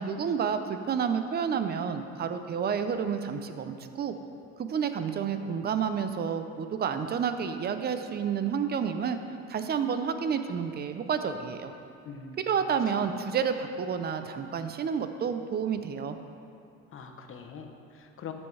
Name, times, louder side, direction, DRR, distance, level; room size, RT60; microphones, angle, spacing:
voice 1, 0.0-4.1 4.6-9.2 9.5-11.7 12.5-16.2, right 7 dB, 30° right, 8 dB, 0.6 m, -30 dB
voice 2, 12.0-12.8 16.9-18.3, left 6 dB, 40° left, 5 dB, 0.9 m, -43 dB
13.5 x 7.1 x 3.3 m, 2.7 s
cardioid pair, 130°, 31 cm